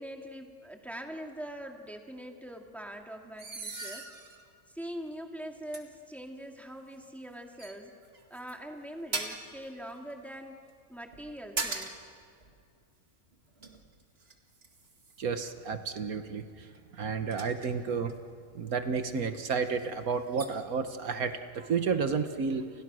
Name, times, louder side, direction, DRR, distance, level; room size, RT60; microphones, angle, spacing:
voice 1, 0.0-4.1 4.7-7.9 8.3-10.6 10.9-12.0, equal, ahead, 2 dB, 2.1 m, -43 dB
sound 1, 3.4-4.5 5.1-5.2 5.7-5.8 7.0-7.3 7.6-8.5 9.1-9.6 11.1-12.1 12.4-12.6 13.3-15.3 16.7-18.2 19.2-19.3 19.5-19.9 20.3-20.5, right 3 dB, 45° right, 2.2 m, -39 dB
voice 2, 15.2-16.7 16.9-18.1 18.6-22.7, right 5 dB, 75° right, 8 dB, 1.7 m, -31 dB
29.5 x 29.0 x 6.3 m, 2.3 s
omnidirectional pair, 1.5 m